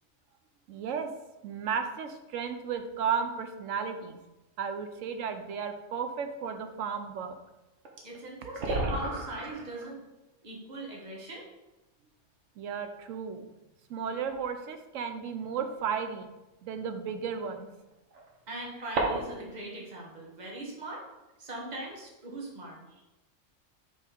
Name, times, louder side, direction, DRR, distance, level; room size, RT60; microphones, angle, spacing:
voice 1, 0.7-1.1 1.4-4.2 4.6-7.4 12.6-13.4 13.9-16.3 16.6-17.7, right 6 dB, 90° right, 7 dB, 1.0 m, -34 dB
sound 1, 7.8-7.9 8.1-8.2 8.5-9.8 11.2-11.3 12.2-12.3 14.2-14.5 15.7-15.8 17.9-19.5, right 2 dB, 65° right, 1.3 m, -33 dB
voice 2, 8.0-10.0 10.4-11.4 18.5-21.1 21.4-23.0, right 1 dB, 35° right, -3 dB, 1.3 m, -40 dB
5.3 x 3.5 x 5.1 m, 1.0 s
omnidirectional pair, 1.3 m